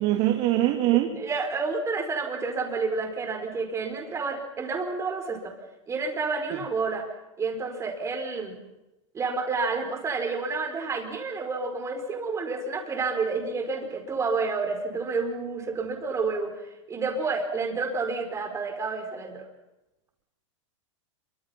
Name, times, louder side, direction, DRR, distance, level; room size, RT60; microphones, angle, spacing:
voice 1, 0.0-1.1, right 15 dB, 45° right, 6 dB, 2.0 m, -22 dB
voice 2, 0.6-5.6 5.9-7.1 7.4-8.6 9.1-19.5, right 4 dB, 20° right, 4 dB, 4.9 m, -30 dB
27.0 x 25.0 x 5.9 m, 0.98 s
hypercardioid pair, 125°, 16 cm